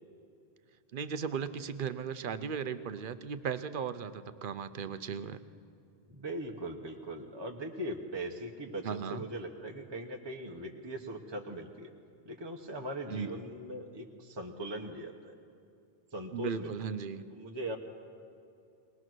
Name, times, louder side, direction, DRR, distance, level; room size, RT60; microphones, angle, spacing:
voice 1, 0.9-5.4 8.8-9.2 13.1-13.3 16.3-17.2, right 6 dB, 55° right, 12 dB, 0.9 m, -36 dB
voice 2, 6.1-11.9 12.2-15.4 16.1-16.7 17.3-17.8, right 1 dB, 25° right, 1 dB, 1.2 m, -40 dB
22.5 x 19.0 x 6.3 m, 2.5 s
omnidirectional pair, 1.1 m